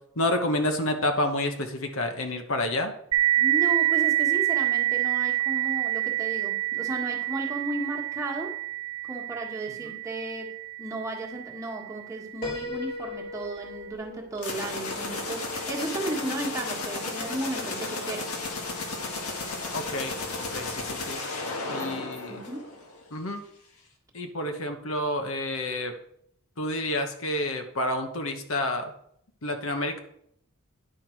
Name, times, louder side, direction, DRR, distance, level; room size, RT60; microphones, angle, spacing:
voice 1, 0.2-2.9 9.8-10.0 19.7-21.2 21.7-22.4 23.1-23.4 24.1-25.9 26.6-28.9 29.4-30.0, left 1 dB, 65° left, 6 dB, 1.1 m, -29 dB
sound 1, 3.1-12.4, right 15 dB, 90° right, 0.8 m, -27 dB
voice 2, 3.4-8.5 9.0-10.5 10.8-18.3 21.6-22.7, right 2 dB, 15° right, -2 dB, 1.6 m, -34 dB
Piano, 12.4-16.2, left 3 dB, 40° left, 2.0 m, -39 dB
sound 2, 14.4-23.0, left 3 dB, 80° left, 1.7 m, -34 dB
10.0 x 5.8 x 4.6 m, 0.71 s
head